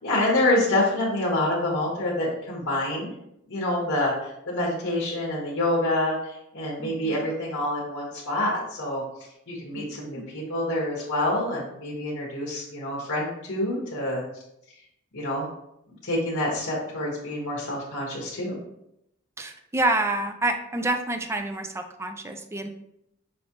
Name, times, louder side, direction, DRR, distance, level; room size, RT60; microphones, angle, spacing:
voice 1, 0.0-3.1 3.5-9.0 9.5-14.2 15.1-15.5 16.0-18.5, left 1 dB, 55° left, -4 dB, 1.2 m, -27 dB
voice 2, 6.8-7.3 9.7-10.3 19.4-22.7, right 2 dB, 15° right, 6 dB, 0.3 m, -28 dB
5.3 x 3.3 x 2.8 m, 0.80 s
head